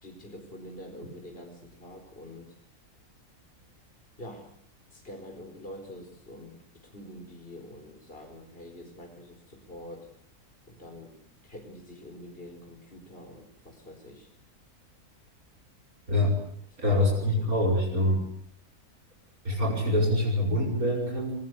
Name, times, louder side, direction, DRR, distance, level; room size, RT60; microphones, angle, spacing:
voice 1, 0.0-2.6 4.2-4.5 4.9-10.1 10.7-14.3 16.8-17.5, left 1 dB, 35° left, 3 dB, 4.9 m, -46 dB
voice 2, 16.1-16.4 16.8-18.2 19.4-21.3, left 1 dB, 70° right, -1 dB, 6.0 m, -25 dB
30.0 x 22.0 x 8.3 m, 0.66 s
omnidirectional pair, 1.6 m